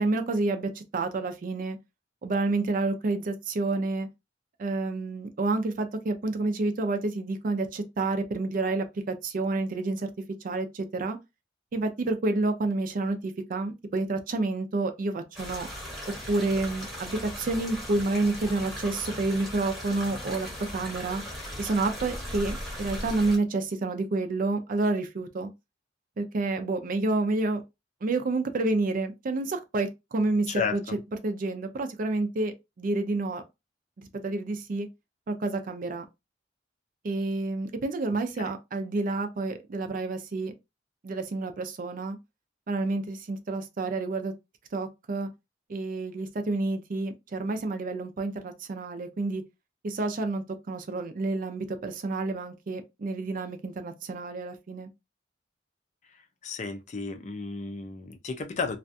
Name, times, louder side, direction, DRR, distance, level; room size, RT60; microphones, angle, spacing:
voice 1, 0.0-1.8 2.2-4.1 4.6-10.1 10.4-11.2 11.7-15.7 16.3-21.2 21.6-25.5 26.2-27.6 28.0-30.8 31.2-33.4 34.0-34.9 35.3-36.0 37.0-40.5 41.0-42.2 42.7-44.3 44.7-45.3 45.7-49.4 49.8-54.9, right 2 dB, 45° right, 0.4 m, -29 dB
sound 1, 15.3-23.4, equal, ahead, 0.9 m, -38 dB
voice 2, 30.5-31.0 38.4-38.5 56.4-58.8, left 5 dB, 40° left, 0.4 m, -33 dB
2.5 x 2.2 x 2.6 m
head